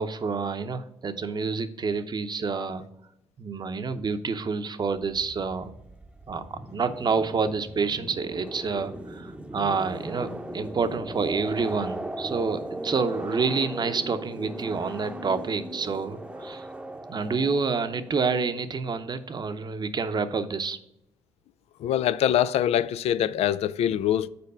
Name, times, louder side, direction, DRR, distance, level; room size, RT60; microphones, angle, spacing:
voice 1, 0.0-2.8 3.4-5.7 6.3-16.7 17.1-20.8, right 4 dB, 40° right, 0.8 m, -28 dB
sound 1, 5.0-18.4, right 1 dB, 10° right, 0.8 m, -38 dB
voice 2, 21.8-24.3, left 10 dB, 70° left, 0.4 m, -24 dB
6.9 x 4.5 x 6.7 m
cardioid pair, 70°, 11 cm